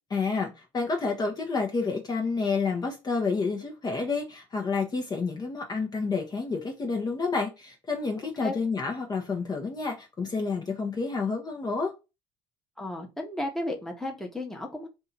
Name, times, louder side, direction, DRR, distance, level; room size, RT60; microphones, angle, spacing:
voice 1, 0.1-11.9, left 4 dB, 30° left, 0.8 m, -29 dB
voice 2, 12.8-14.9, left 1 dB, 5° left, 1.0 m, -34 dB
2.7 x 2.5 x 4.2 m
supercardioid pair, 75°, 14 cm